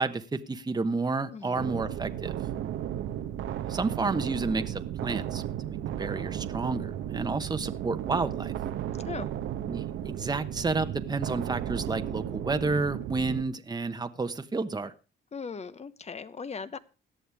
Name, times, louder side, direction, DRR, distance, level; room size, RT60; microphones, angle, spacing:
voice 1, 0.0-2.4 3.7-8.5 9.7-14.9, right 3 dB, 20° right, 8 dB, 1.0 m, -31 dB
voice 2, 1.3-1.7 9.0-9.3 15.3-16.8, left 5 dB, 35° left, 14 dB, 1.1 m, -38 dB
sound 1, 1.6-13.4, right 11 dB, 85° right, 1.1 m, -34 dB
17.5 x 11.5 x 3.5 m, 0.33 s
cardioid pair, 90°, 20 cm